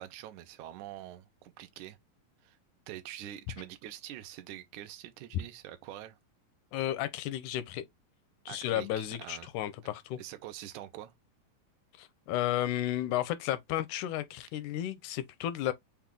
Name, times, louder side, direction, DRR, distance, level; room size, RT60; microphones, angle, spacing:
voice 1, 0.0-2.0 2.4-2.6 2.9-6.2 8.5-9.5 10.2-11.1, right 13 dB, 75° right, 1.9 m, -45 dB
voice 2, 6.7-7.9 8.5-10.2 12.0-15.7, left 13 dB, 80° left, 1.8 m, -33 dB
5.7 x 2.3 x 3.7 m
omnidirectional pair, 4.0 m